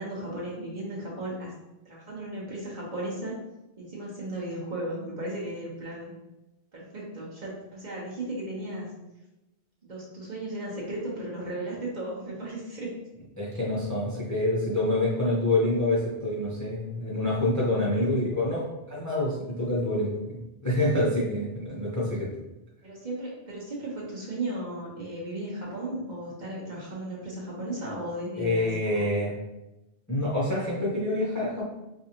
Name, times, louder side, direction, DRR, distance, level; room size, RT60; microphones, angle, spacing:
voice 1, 0.0-1.5 1.8-3.3 3.8-6.1 6.7-8.9 9.8-12.9 17.9-18.0 22.8-29.1, right 1 dB, 45° right, -5 dB, 1.1 m, -35 dB
voice 2, 13.4-22.3 28.4-29.3 30.1-31.6, left 1 dB, 20° left, -7 dB, 0.7 m, -27 dB
4.6 x 2.5 x 2.8 m, 0.97 s
omnidirectional pair, 1.1 m